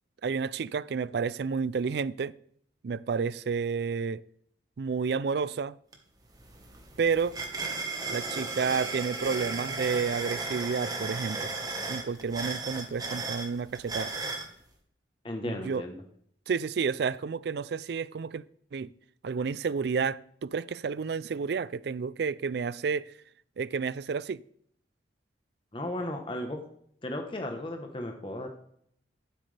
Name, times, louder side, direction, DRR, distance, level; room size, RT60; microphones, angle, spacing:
voice 1, 0.2-2.3 2.8-4.2 4.8-5.8 7.0-7.4 8.1-11.5 11.9-14.1 15.4-15.8 16.5-18.4 18.7-18.9 19.2-23.1 23.6-24.4, right 5 dB, 60° right, 0.4 m, -30 dB
sound 1, 5.9-6.0 6.3-14.5, right 3 dB, 20° right, 1.3 m, -35 dB
voice 2, 15.2-16.0 25.7-26.6 27.0-28.6, left 1 dB, 25° left, 1.0 m, -35 dB
13.5 x 7.7 x 3.3 m
head